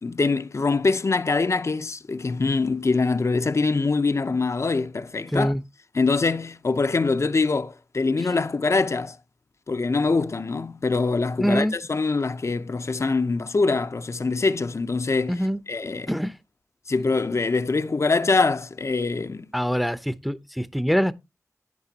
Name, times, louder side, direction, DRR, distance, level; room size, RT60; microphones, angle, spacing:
voice 1, 0.0-5.5 5.9-9.2 9.7-15.4 15.7-16.1 16.9-19.5, left 3 dB, 55° left, 0.7 m, -24 dB
voice 2, 11.4-11.7 15.3-15.6 16.1-16.3 19.5-21.1, equal, ahead, 0.7 m, -24 dB
10.5 x 9.4 x 2.8 m
wide cardioid pair, 70°, 6 cm